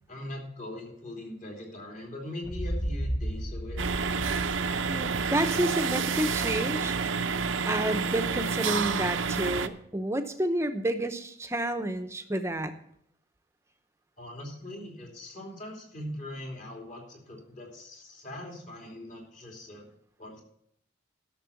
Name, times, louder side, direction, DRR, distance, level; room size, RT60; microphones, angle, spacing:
voice 1, 0.1-4.0 14.2-19.9 20.2-20.4, left 1 dB, 40° left, 0 dB, 3.0 m, -41 dB
sound 1, 2.4-6.3, equal, 10° left, 0.5 m, -34 dB
sound 2, 3.8-9.7, right 5 dB, 85° right, 0.7 m, -29 dB
voice 2, 4.9-6.9 7.7-12.7, right 1 dB, 15° right, 8 dB, 0.8 m, -30 dB
12.5 x 6.7 x 7.0 m, 0.70 s
head